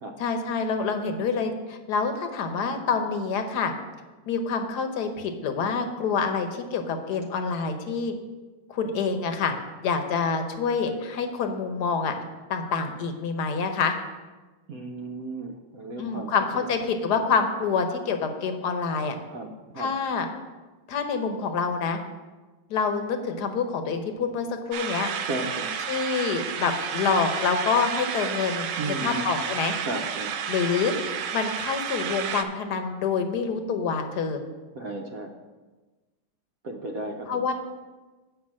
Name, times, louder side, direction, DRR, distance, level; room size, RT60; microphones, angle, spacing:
voice 1, 0.2-3.7 4.3-8.1 8.7-9.5 9.8-12.1 12.5-13.9 16.0-19.1 19.8-20.3 20.9-22.0 22.7-25.1 25.9-29.7 30.5-30.9 31.3-34.4 37.3-37.5, left 5 dB, 65° left, 6 dB, 1.3 m, -27 dB
voice 2, 14.7-16.6 17.2-17.3 19.3-19.9 25.3-25.7 28.8-29.4 29.8-30.3 34.7-35.3 36.6-37.5, right 2 dB, 60° right, 2 dB, 1.0 m, -34 dB
sound 1, 24.7-32.4, right 8 dB, 75° right, 1.3 m, -31 dB
7.9 x 5.4 x 7.3 m, 1.3 s
omnidirectional pair, 2.1 m